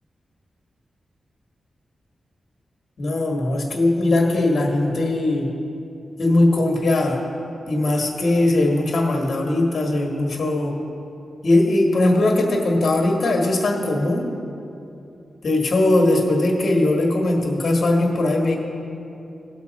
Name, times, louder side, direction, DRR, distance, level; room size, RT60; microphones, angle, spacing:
voice 1, 3.0-5.5 6.2-7.2 7.7-10.8 11.4-14.3 15.4-18.6, left 2 dB, 50° left, 1 dB, 1.6 m, -20 dB
18.0 x 6.6 x 4.2 m, 2.7 s
wide cardioid pair, 180°, 0 cm